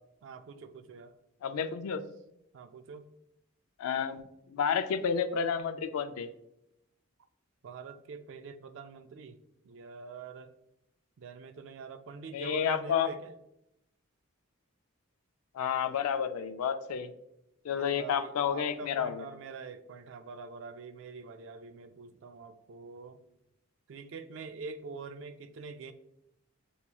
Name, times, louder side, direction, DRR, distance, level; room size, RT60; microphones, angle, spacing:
voice 1, 0.2-1.2 2.5-3.1 7.6-9.4 9.6-10.5 11.2-13.3 17.7-23.2 23.9-25.9, right 4 dB, 60° right, 10 dB, 0.3 m, -45 dB
voice 2, 1.4-2.0 3.8-4.2 4.5-6.3 12.3-13.1 15.5-17.1 17.6-19.2, left 7 dB, 90° left, 10 dB, 0.4 m, -30 dB
6.7 x 2.9 x 2.3 m, 0.83 s
head